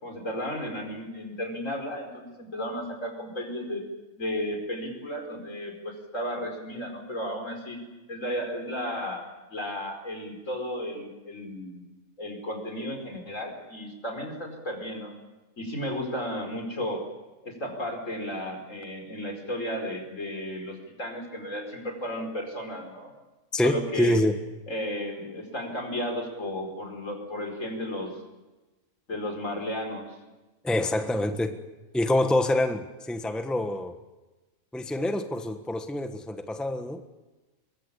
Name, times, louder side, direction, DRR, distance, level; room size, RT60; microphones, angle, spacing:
voice 1, 0.0-3.8 4.2-7.8 8.1-9.2 9.5-11.9 12.2-15.1 15.6-17.0 17.4-23.1 23.6-24.2 24.7-28.1 29.1-30.2, equal, 75° left, 4 dB, 5.3 m, -34 dB
voice 2, 23.5-24.4 30.6-31.6 31.9-34.0 34.7-37.0, left 1 dB, ahead, 7 dB, 1.3 m, -26 dB
23.0 x 22.5 x 8.5 m, 1.1 s
omnidirectional pair, 1.4 m